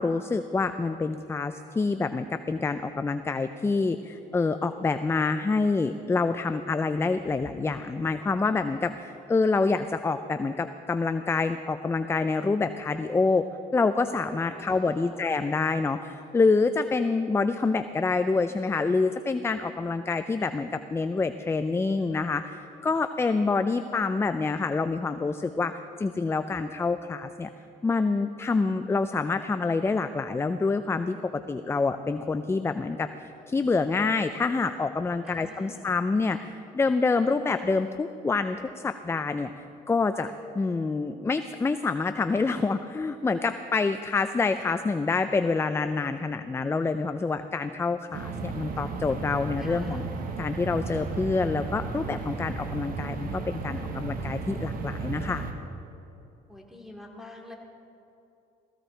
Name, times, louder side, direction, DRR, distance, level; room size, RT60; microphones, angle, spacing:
voice 1, 0.0-13.4 13.7-27.5 27.8-31.2 31.5-33.1 33.5-50.0 50.4-55.4, left 4 dB, 15° left, 10 dB, 0.4 m, -27 dB
voice 2, 14.5-15.2 35.2-35.9 49.6-50.1 56.5-57.5, left 2 dB, ahead, 0 dB, 2.6 m, -46 dB
sound 1, 48.1-55.5, right 4 dB, 55° right, 1.6 m, -34 dB
16.5 x 15.0 x 4.5 m, 2.8 s
cardioid pair, 110°, 17 cm